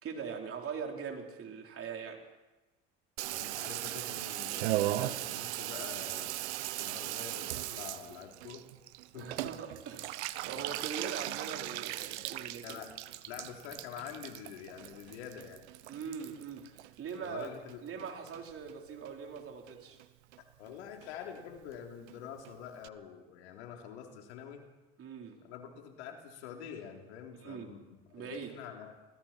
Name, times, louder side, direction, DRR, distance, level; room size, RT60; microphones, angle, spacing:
voice 1, 0.0-2.2 9.1-12.8 15.9-17.5 17.8-20.0 25.0-25.5 27.4-27.7 28.1-28.5, right 6 dB, 45° right, 2 dB, 4.2 m, -42 dB
voice 2, 3.2-6.5 6.8-8.6 9.1-9.3 12.6-13.0 13.3-15.6 17.2-17.8 20.6-24.7 25.4-28.9, left 8 dB, 90° left, 2 dB, 3.6 m, -46 dB
Water tap faucet / Bathtub (filling or washing), 3.2-17.7 18.0-18.7 19.1-19.2 19.4-19.5 19.7-20.1 20.3-20.4 20.7-20.8 21.0-21.1 21.4-21.5 21.7-21.8 22.1-22.2 22.4-22.5 22.8-22.9, right 16 dB, 90° right, 1.0 m, -38 dB
28.5 x 20.5 x 4.5 m, 1.1 s
supercardioid pair, 95°, 32 cm